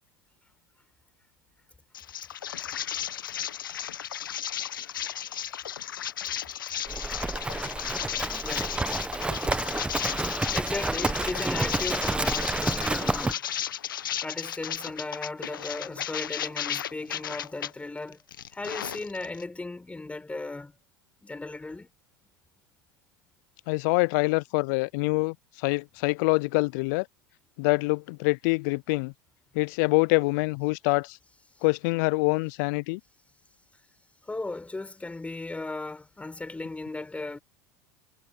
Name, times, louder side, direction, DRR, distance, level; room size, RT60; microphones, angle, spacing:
sound 1, 1.9-17.7 18.1-19.4, left 10 dB, 85° left, 1.5 m, -34 dB
Livestock farm animals working animals, 6.9-13.3, right 2 dB, 10° right, 1.1 m, -29 dB
voice 1, 8.4-8.8 10.5-13.4 14.2-18.2 18.5-20.7 21.2-21.9 34.2-37.4, left 2 dB, 10° left, 7.0 m, -36 dB
voice 2, 23.7-27.1 27.6-29.1 29.5-31.2 31.6-33.0, left 27 dB, 65° left, 0.6 m, -25 dB
hypercardioid pair, 80°, 11 cm